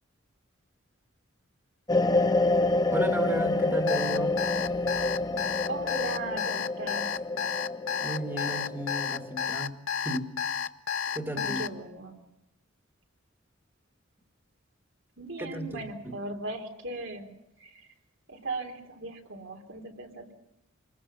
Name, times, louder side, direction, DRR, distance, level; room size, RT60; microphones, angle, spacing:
sound 1, 1.9-9.5, left 2 dB, 20° left, 0.9 m, -28 dB
voice 1, 2.9-4.4 8.0-10.3 11.1-11.6 15.4-16.1, right 1 dB, 10° right, 3 dB, 2.3 m, -34 dB
Alarm, 3.9-11.7, left 7 dB, 80° left, 0.8 m, -31 dB
voice 2, 5.7-7.0 11.3-12.2 15.2-17.9 18.3-20.3, right 2 dB, 70° right, 3 dB, 3.7 m, -38 dB
28.0 x 20.5 x 5.7 m, 0.83 s
head